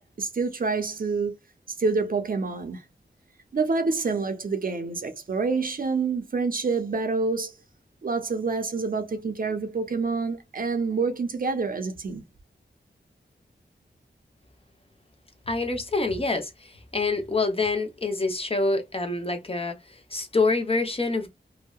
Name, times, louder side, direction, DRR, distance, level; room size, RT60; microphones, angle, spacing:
voice 1, 0.0-1.4 1.8-2.8 3.5-7.5 8.0-12.2, right 4 dB, 50° right, 0.5 m, -27 dB
voice 2, 15.5-21.3, left 3 dB, 30° left, 0.6 m, -26 dB
2.7 x 2.1 x 2.2 m
wide cardioid pair, 95°, 19 cm